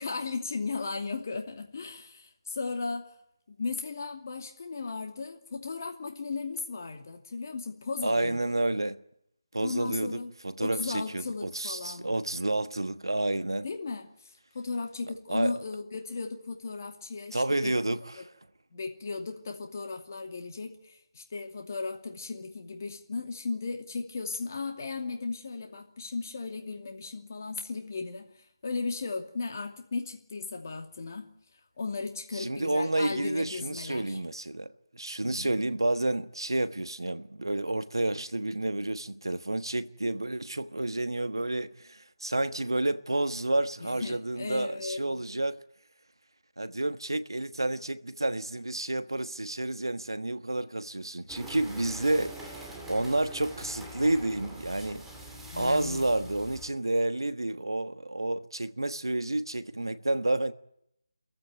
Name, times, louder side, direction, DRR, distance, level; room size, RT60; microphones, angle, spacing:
voice 1, 0.0-3.1 3.6-8.4 9.6-10.3 10.6-12.1 13.6-14.1 14.5-17.7 18.2-18.3 18.7-28.3 28.6-31.3 31.8-34.2 35.2-35.6 43.8-45.3 55.5-56.0, left 4 dB, 45° left, 2.6 m, -36 dB
voice 2, 8.0-9.0 9.5-13.7 15.3-15.5 17.3-18.3 32.3-45.6 46.6-55.0 55.5-60.5, right 2 dB, 80° right, 1.3 m, -30 dB
sound 1, 51.3-56.7, right 1 dB, 5° right, 2.5 m, -44 dB
27.5 x 15.0 x 9.1 m
figure-of-eight pair, 160°, 2 cm